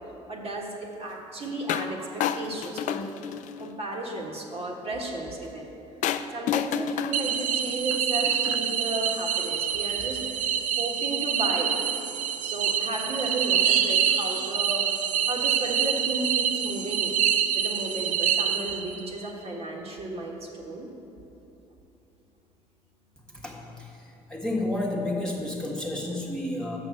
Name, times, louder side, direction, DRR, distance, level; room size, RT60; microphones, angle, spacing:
voice 1, 0.3-3.0 3.6-5.7 6.3-10.2 10.7-11.7 12.4-17.1 17.5-20.9, right 2 dB, 45° right, -2 dB, 1.6 m, -33 dB
sound 1, 1.7-1.9 2.2-3.7 6.0-8.8, left 9 dB, 60° left, 0.4 m, -30 dB
sound 2, 7.1-19.1, right 8 dB, 65° right, 0.5 m, -26 dB
voice 2, 24.3-26.8, left 1 dB, 5° left, -3 dB, 1.5 m, -30 dB
6.5 x 6.1 x 7.3 m, 2.9 s
hypercardioid pair, 65°, 14 cm